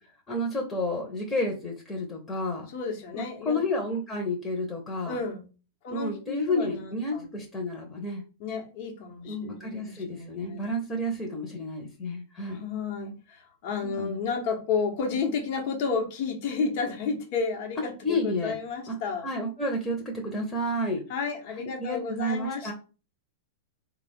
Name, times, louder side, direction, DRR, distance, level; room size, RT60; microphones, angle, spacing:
voice 1, 0.3-2.7 3.1-5.2 5.9-8.2 9.2-12.6 13.8-14.3 18.0-18.6 18.9-19.0 19.2-21.0 21.6-22.7, left 1 dB, 20° left, -1 dB, 1.0 m, -31 dB
voice 2, 2.7-3.6 5.0-5.5 5.8-7.3 8.4-10.7 12.5-19.2 21.1-22.7, left 5 dB, 55° left, 2 dB, 1.2 m, -32 dB
3.7 x 2.4 x 3.6 m, 0.34 s
hypercardioid pair, 105°, 0 cm